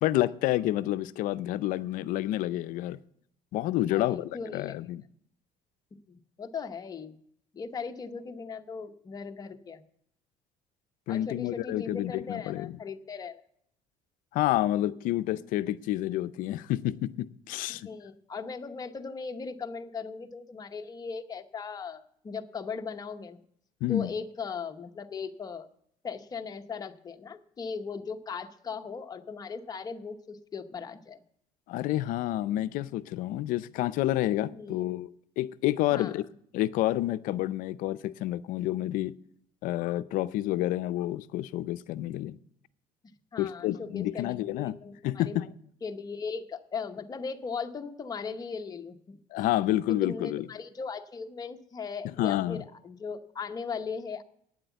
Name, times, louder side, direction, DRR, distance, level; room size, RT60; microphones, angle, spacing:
voice 1, 0.0-3.0 3.5-5.0 11.1-12.8 14.3-17.9 23.8-24.1 31.7-35.1 35.4-36.2 36.5-39.1 39.6-42.4 43.4-44.8 45.0-45.5 49.3-50.4 52.2-52.6, left 14 dB, 70° left, 0.5 m, -29 dB
voice 2, 3.9-4.7 6.1-7.1 7.5-9.8 11.1-13.4 17.7-23.4 23.9-25.7 26.0-31.2 32.5-32.6 34.5-34.8 35.9-36.2 43.3-45.5 45.8-49.2 49.9-54.2, left 5 dB, 25° left, 0.9 m, -38 dB
9.4 x 7.7 x 8.1 m
cardioid pair, 120°, 14 cm